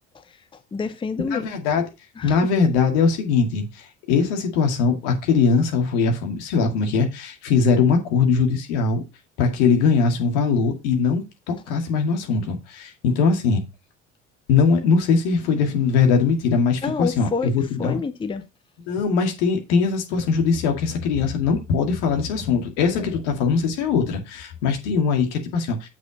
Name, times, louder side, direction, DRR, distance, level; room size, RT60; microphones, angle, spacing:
voice 1, 0.1-1.5 2.2-2.4 16.8-18.4, left 5 dB, 15° left, 0.7 m, -29 dB
voice 2, 1.3-1.8 2.2-9.0 9.4-13.6 14.5-18.0 18.9-25.9, left 5 dB, 65° left, 2.1 m, -21 dB
7.6 x 6.2 x 4.0 m
figure-of-eight pair, 65°, 37 cm